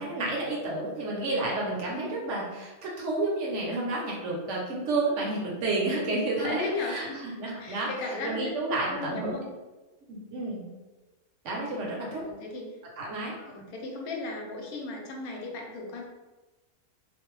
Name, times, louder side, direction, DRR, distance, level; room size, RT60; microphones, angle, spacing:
voice 1, 0.0-7.9 8.2-9.3 10.1-10.7 11.4-12.2 13.0-13.3, right 2 dB, 65° right, -3 dB, 0.8 m, -30 dB
voice 2, 1.9-2.3 6.4-7.3 7.6-8.5 8.8-9.5 12.1-12.8 13.4-16.0, left 3 dB, 90° left, 0 dB, 1.1 m, -36 dB
2.4 x 2.0 x 3.0 m, 1.2 s
omnidirectional pair, 1.5 m